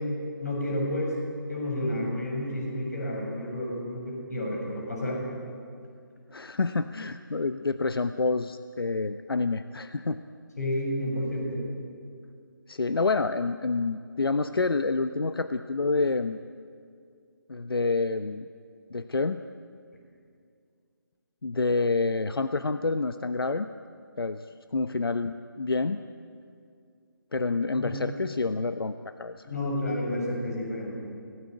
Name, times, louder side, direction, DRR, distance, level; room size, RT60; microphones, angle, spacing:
voice 1, 0.4-1.1 1.5-5.2 10.6-11.6 27.7-27.9 29.5-31.0, left 1 dB, 45° left, 0 dB, 7.2 m, -30 dB
voice 2, 6.3-10.2 12.7-16.4 17.5-18.4 18.9-19.4 21.4-23.7 24.2-24.4 24.7-26.0 27.3-29.5, left 3 dB, 85° left, 10 dB, 1.0 m, -28 dB
25.0 x 17.5 x 9.3 m, 2.3 s
figure-of-eight pair, 175°, 12 cm